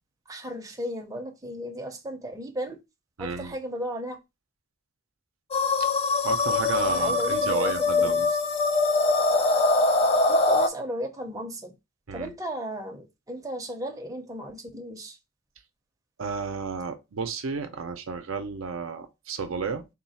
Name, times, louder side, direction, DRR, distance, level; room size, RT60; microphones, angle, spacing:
voice 1, 0.3-2.8 3.2-4.2 6.5-8.2 10.3-11.7 12.1-15.2, equal, 15° right, 0.6 m, -35 dB
voice 2, 3.2-3.6 6.1-8.3 12.1-12.3 16.2-19.9, right 5 dB, 75° right, 0.6 m, -32 dB
sound 1, 5.5-10.7, left 3 dB, 30° left, 0.3 m, -23 dB
3.7 x 2.4 x 4.1 m
head